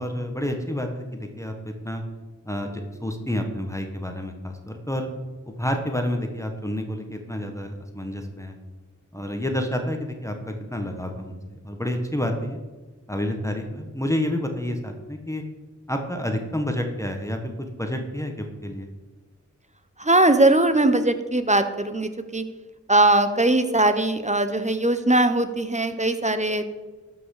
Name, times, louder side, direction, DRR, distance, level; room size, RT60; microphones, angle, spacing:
voice 1, 0.0-2.0 2.4-5.1 5.6-8.5 9.1-12.6 13.1-15.4 15.9-18.9, left 1 dB, 10° left, 4 dB, 1.4 m, -29 dB
voice 2, 20.0-22.4 22.9-26.6, right 2 dB, 25° right, 9 dB, 1.0 m, -20 dB
12.5 x 5.9 x 6.6 m, 1.3 s
wide cardioid pair, 40°, 31 cm